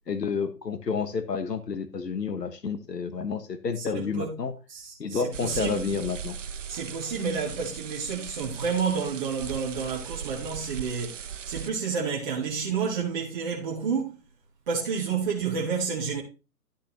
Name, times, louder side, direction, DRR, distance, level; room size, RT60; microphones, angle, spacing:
voice 1, 0.1-4.5 5.0-6.3, left 5 dB, 90° left, 1.5 m, -30 dB
voice 2, 3.8-4.4 4.7-6.0 6.7-14.2 14.7-16.2, right 5 dB, 30° right, 1.5 m, -30 dB
sound 1, 5.3-11.7, right 8 dB, 55° right, 0.5 m, -38 dB
11.5 x 6.5 x 3.1 m
hypercardioid pair, 160°, 48 cm